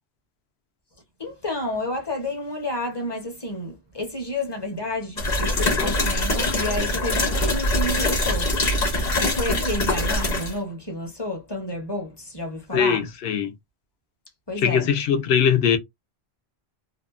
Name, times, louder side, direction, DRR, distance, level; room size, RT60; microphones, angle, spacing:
voice 1, 1.2-13.1 14.5-14.9, left 1 dB, 25° left, 0.7 m, -30 dB
sound 1, 5.2-10.6, left 1 dB, 45° left, 1.0 m, -23 dB
voice 2, 12.7-13.5 14.6-15.8, left 7 dB, 75° left, 0.8 m, -21 dB
2.7 x 2.2 x 2.4 m
omnidirectional pair, 1.1 m